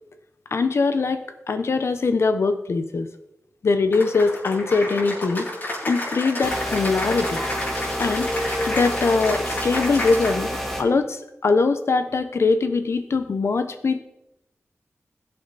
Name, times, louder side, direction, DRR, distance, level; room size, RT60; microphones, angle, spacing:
voice 1, 0.5-3.1 3.6-5.5 5.8-7.4 8.0-8.3 8.7-14.0, left 4 dB, 65° left, 9 dB, 1.1 m, -22 dB
Cheering / Applause, 3.9-10.6, left 1 dB, 45° left, 6.0 m, -30 dB
sound 1, 6.4-10.8, equal, 5° left, 2.3 m, -29 dB
21.0 x 8.3 x 4.2 m, 0.90 s
wide cardioid pair, 125°, 5 cm